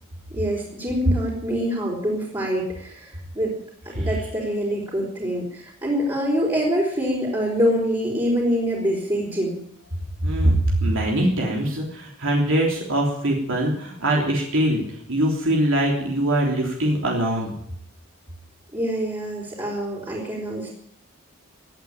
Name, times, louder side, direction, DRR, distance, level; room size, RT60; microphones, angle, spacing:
voice 1, 0.3-3.5 4.0-9.6 18.7-20.7, equal, 20° right, -5 dB, 4.4 m, -25 dB
voice 2, 10.2-14.8 15.1-17.5, right 1 dB, 60° right, -1 dB, 3.3 m, -22 dB
17.0 x 9.3 x 9.0 m, 0.69 s
head